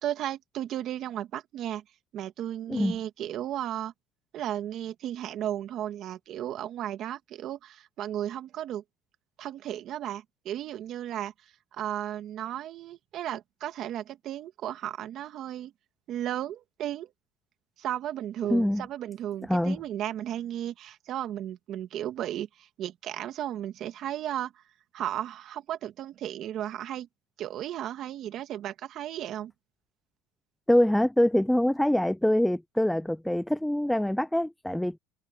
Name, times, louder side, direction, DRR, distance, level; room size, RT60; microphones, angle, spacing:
voice 1, 0.0-1.8 2.1-3.9 4.3-8.8 9.4-11.3 11.7-15.7 16.1-17.1 17.8-24.5 24.9-27.1 27.4-29.5, right 11 dB, 45° right, 1.9 m, -34 dB
voice 2, 18.5-18.9 19.5-19.8 30.7-35.0, left 1 dB, 5° left, 0.4 m, -24 dB
cardioid pair, 140°, 0 cm